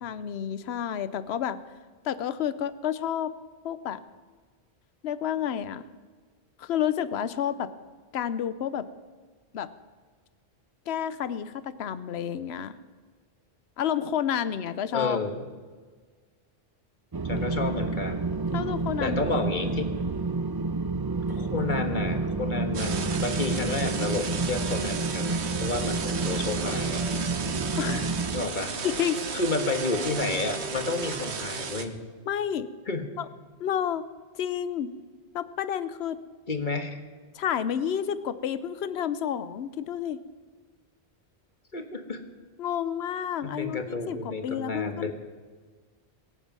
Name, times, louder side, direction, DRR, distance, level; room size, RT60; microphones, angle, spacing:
voice 1, 0.0-1.6 2.0-3.3 3.6-4.0 5.0-5.9 6.6-7.7 8.1-8.9 9.5-9.7 10.9-12.7 13.8-15.2 18.5-19.3 27.8-28.1 28.8-29.3 32.3-32.7 33.2-33.3 33.6-34.1 34.4-34.9 35.3-36.2 37.3-40.2 42.6-45.1, left 9 dB, 70° left, 15 dB, 1.0 m, -30 dB
voice 2, 14.9-15.4 17.2-18.2 19.0-19.9 21.3-27.0 28.3-28.7 29.3-32.0 32.9-33.0 36.5-37.0 41.7-42.2 43.4-45.1, left 3 dB, 45° left, 6 dB, 1.6 m, -30 dB
sound 1, 17.1-28.4, right 3 dB, 30° right, 0.4 m, -29 dB
sound 2, 22.7-31.9, right 5 dB, 75° right, 1.4 m, -34 dB
23.0 x 8.7 x 6.1 m, 1.5 s
omnidirectional pair, 1.1 m